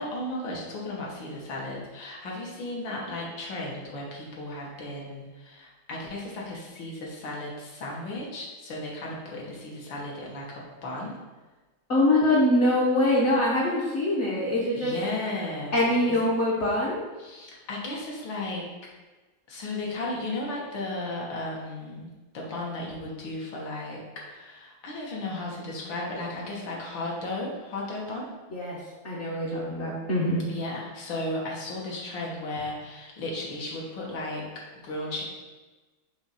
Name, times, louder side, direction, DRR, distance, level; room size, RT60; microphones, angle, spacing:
voice 1, 0.0-11.2 14.7-15.8 16.1-16.2 17.2-18.6 19.5-28.3 30.5-34.5 34.8-35.2, left 2 dB, 70° left, -3 dB, 2.0 m, -35 dB
voice 2, 11.9-14.9 15.7-17.0 28.5-28.8 29.0-30.5, left 1 dB, 45° left, -6 dB, 1.0 m, -24 dB
5.9 x 3.1 x 5.6 m, 1.2 s
omnidirectional pair, 2.2 m